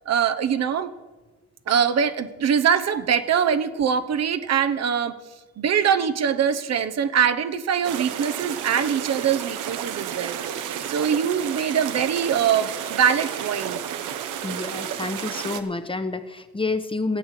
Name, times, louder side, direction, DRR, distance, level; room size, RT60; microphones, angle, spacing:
voice 1, 0.1-0.9 1.7-5.2 5.6-13.8, right 8 dB, 60° right, 9 dB, 0.9 m, -23 dB
sound 1, 7.8-15.6, right 9 dB, 85° right, 1.0 m, -31 dB
voice 2, 14.4-17.2, left 3 dB, 15° left, 10 dB, 0.9 m, -29 dB
14.0 x 8.0 x 7.5 m, 1.2 s
cardioid pair, 90°, 30 cm